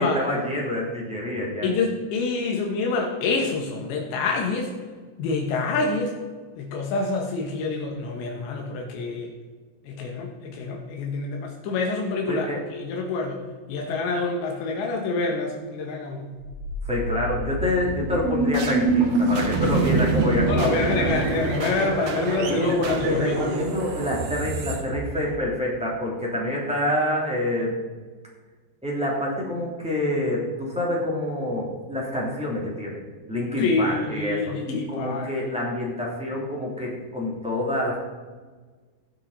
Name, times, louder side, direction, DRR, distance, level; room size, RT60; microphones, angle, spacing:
voice 1, 0.0-1.7 12.3-12.6 16.8-20.9 22.5-27.8 28.8-33.0 33.3-38.0, left 1 dB, ahead, -4 dB, 1.8 m, -27 dB
voice 2, 1.6-4.7 5.2-6.2 6.6-9.3 9.9-13.4 13.7-16.3 20.5-23.6 33.6-35.3, left 3 dB, 80° left, 1 dB, 3.7 m, -27 dB
sound 1, 16.4-25.5, right 3 dB, 75° right, 1.6 m, -25 dB
18.5 x 6.4 x 4.1 m, 1.4 s
omnidirectional pair, 5.1 m